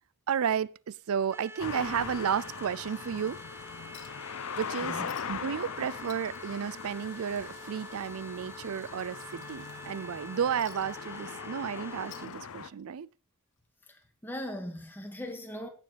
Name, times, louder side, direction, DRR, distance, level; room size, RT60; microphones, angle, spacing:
voice 1, 0.3-3.4 4.5-13.1, right 7 dB, 80° right, 0.4 m, -32 dB
sound 1, 1.3-12.3, right 2 dB, 10° right, 0.6 m, -48 dB
sound 2, 1.6-12.7, left 6 dB, 75° left, 0.6 m, -41 dB
Chink clink, 3.9-4.3 4.6-4.7 5.1-5.5 5.8-7.5 7.9-8.0 8.5-9.9 10.6-11.7 12.0-12.9 14.0-14.1, left 11 dB, 55° left, 1.5 m, -54 dB
voice 2, 4.8-5.1 13.9-15.7, left 1 dB, 10° left, 2.0 m, -39 dB
16.5 x 7.1 x 3.3 m
head